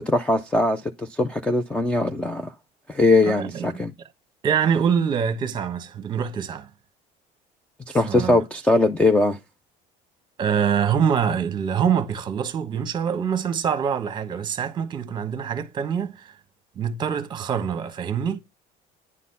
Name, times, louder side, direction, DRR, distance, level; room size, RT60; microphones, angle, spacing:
voice 1, 0.0-2.5 2.9-3.9 7.9-9.4, left 2 dB, 5° left, 0.4 m, -21 dB
voice 2, 3.2-3.8 4.4-6.7 7.9-8.4 10.4-16.3 16.8-18.4, right 7 dB, 25° right, 1.1 m, -25 dB
9.9 x 4.1 x 5.5 m
cardioid pair, 165°, 17 cm